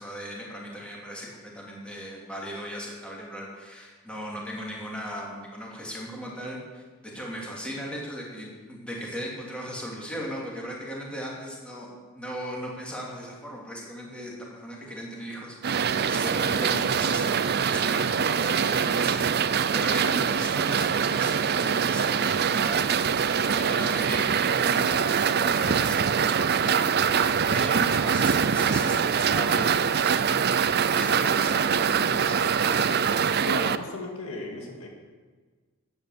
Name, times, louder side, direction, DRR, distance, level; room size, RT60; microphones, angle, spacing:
voice 1, 0.0-6.8 7.1-30.2 30.9-32.9, equal, 5° left, -4 dB, 3.0 m, -37 dB
sound 1, 15.6-33.8, right 7 dB, 45° right, 0.5 m, -24 dB
voice 2, 33.4-34.9, left 2 dB, 65° left, 0 dB, 2.2 m, -35 dB
12.5 x 8.9 x 8.3 m, 1.4 s
head